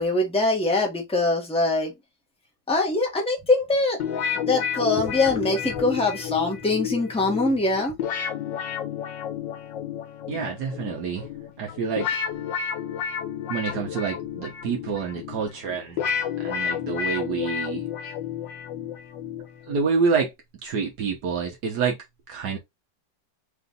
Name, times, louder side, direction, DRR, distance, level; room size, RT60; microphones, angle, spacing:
voice 1, 0.0-1.9 2.7-4.0 4.4-7.9, left 2 dB, 5° left, 0.9 m, -23 dB
sound 1, 4.0-19.9, left 8 dB, 75° left, 1.5 m, -31 dB
voice 2, 10.3-11.3 11.6-12.1 13.5-16.1 16.4-17.8 19.7-20.3 20.6-22.0 22.3-22.6, right 5 dB, 65° right, 1.4 m, -27 dB
4.0 x 2.6 x 3.6 m
omnidirectional pair, 2.1 m